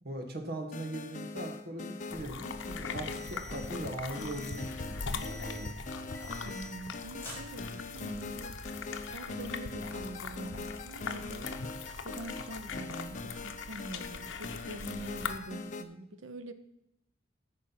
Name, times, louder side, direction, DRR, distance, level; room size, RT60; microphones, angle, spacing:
voice 1, 0.0-5.7, right 1 dB, 50° right, 4 dB, 1.6 m, -40 dB
sound 1, 0.7-15.8, left 3 dB, 40° left, 0.7 m, -42 dB
sound 2, 2.1-15.4, left 5 dB, 85° left, 0.9 m, -41 dB
sound 3, 2.7-3.7 4.1-4.7 5.1-5.7 6.1-6.9 7.2-8.1, left 1 dB, 10° left, 2.9 m, -48 dB
voice 2, 6.4-8.5 9.0-11.5 11.9-16.5, right 1 dB, 90° right, 10 dB, 1.0 m, -44 dB
13.5 x 5.1 x 5.8 m, 0.84 s
head